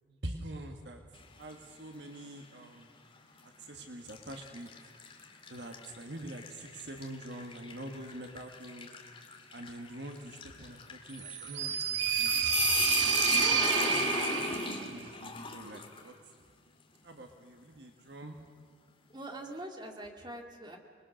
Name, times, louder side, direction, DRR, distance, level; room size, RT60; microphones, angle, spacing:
voice 1, 0.2-1.0 1.4-2.9 3.6-4.7 5.5-8.9 9.5-12.6 13.3-16.1 17.0-18.4, right 1 dB, 65° right, 4 dB, 1.5 m, -45 dB
sound 1, 1.1-1.6 2.1-2.3 3.2-3.5 4.1-16.1, left 5 dB, 30° left, 2.0 m, -37 dB
sound 2, 11.2-14.9, right 7 dB, 80° right, 1.2 m, -29 dB
voice 2, 19.1-20.8, right 1 dB, 25° right, 2 dB, 2.3 m, -43 dB
27.0 x 21.0 x 6.4 m, 2.1 s
head